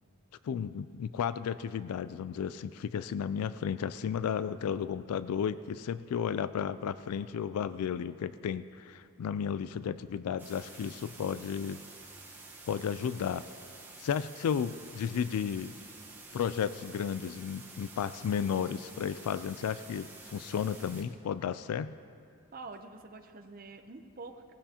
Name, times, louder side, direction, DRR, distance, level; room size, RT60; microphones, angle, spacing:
voice 1, 0.4-11.8 12.7-13.4 14.0-15.7 16.3-21.9, left 7 dB, 85° left, 14 dB, 0.3 m, -33 dB
sound 1, 10.4-21.0, right 3 dB, 10° right, 1.1 m, -50 dB
voice 2, 22.5-24.5, right 3 dB, 40° right, 6 dB, 0.7 m, -46 dB
18.0 x 16.0 x 2.9 m, 2.4 s
head